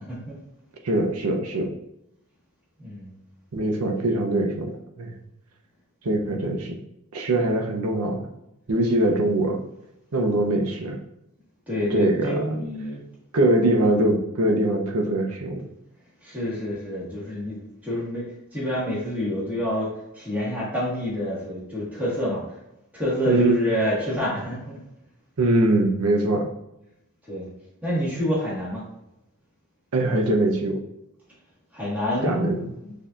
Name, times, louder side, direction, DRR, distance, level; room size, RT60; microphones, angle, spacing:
voice 1, 0.1-0.4 2.8-3.1 9.0-9.2 11.7-13.0 16.2-22.4 22.9-24.8 27.3-27.5 27.8-28.8 31.7-32.5 32.8-32.9, equal, 5° right, -8 dB, 1.4 m, -27 dB
voice 2, 0.8-1.7 3.5-4.7 5.0-5.1 6.0-6.8 7.1-8.3 8.7-9.6 10.1-11.0 11.9-12.5 13.3-15.6 23.3-23.6 25.4-26.5 29.9-30.8 32.2-32.7, right 1 dB, 75° right, 2 dB, 0.6 m, -22 dB
6.3 x 2.7 x 2.4 m, 0.87 s
head